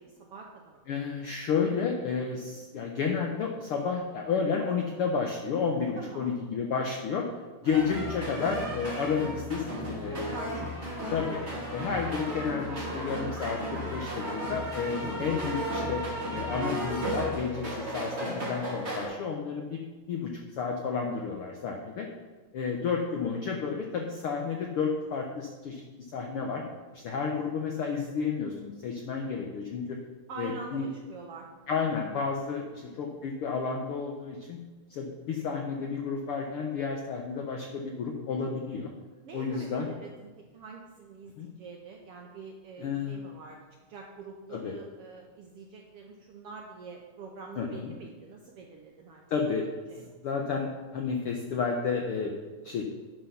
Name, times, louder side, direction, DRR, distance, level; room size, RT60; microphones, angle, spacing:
voice 1, 0.0-0.9 1.1-1.3 5.9-6.4 7.6-8.0 10.1-10.9 12.7-13.0 22.5-22.7 30.3-31.5 32.6-33.0 39.2-43.6 43.9-49.3 49.9-50.0, right 4 dB, 75° right, 0 dB, 1.4 m, -45 dB
voice 2, 0.9-7.3 7.6-10.3 11.1-11.4 11.7-19.8 20.1-22.1 22.5-25.8 26.1-26.6 26.9-30.0 30.4-30.9 31.7-34.6 34.9-38.9 39.3-39.9 41.4-41.5 42.8-43.2 44.5-44.7 47.6-47.9 49.3-49.7 50.0-52.3 52.6-52.8, left 5 dB, 80° left, 1 dB, 1.2 m, -31 dB
sound 1, 7.6-19.1, equal, 20° right, 3.0 m, -34 dB
11.0 x 5.7 x 5.7 m, 1.3 s
omnidirectional pair, 3.6 m